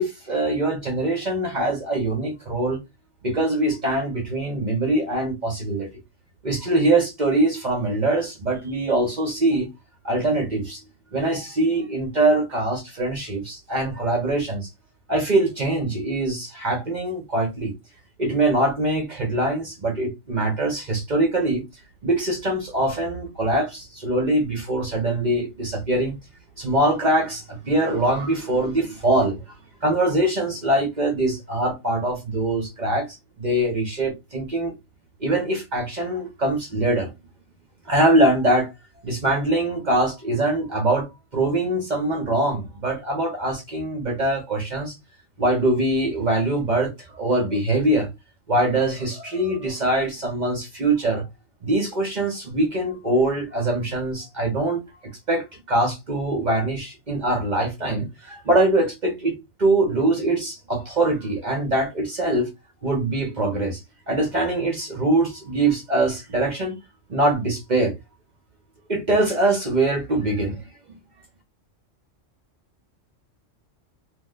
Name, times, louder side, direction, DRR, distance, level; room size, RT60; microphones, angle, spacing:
voice 1, 0.0-2.8 3.2-5.9 6.4-9.7 10.0-10.8 11.1-14.7 15.1-17.7 18.2-21.6 22.0-26.2 26.6-29.4 29.8-34.7 35.2-37.1 37.9-38.7 39.0-45.0 45.4-48.1 48.5-51.3 51.6-62.5 62.8-63.8 64.1-66.8 67.1-67.9 68.9-70.6, right 2 dB, 45° right, 0.8 m, -23 dB
2.7 x 2.1 x 3.6 m
omnidirectional pair, 1.3 m